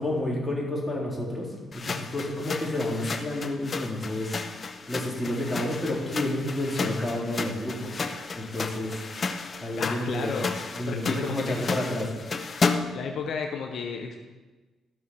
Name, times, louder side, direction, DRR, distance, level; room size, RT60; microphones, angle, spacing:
voice 1, 0.0-4.4 4.9-8.0 8.3-9.0 9.6-10.4 10.7-12.1, left 1 dB, 5° left, -4 dB, 3.8 m, -30 dB
sound 1, 1.7-13.1, left 4 dB, 40° left, 0.9 m, -33 dB
voice 2, 9.7-10.6 10.9-11.5 12.9-14.2, left 5 dB, 65° left, 4 dB, 1.0 m, -33 dB
13.5 x 6.2 x 5.8 m, 1.2 s
cardioid pair, 90°, 0 cm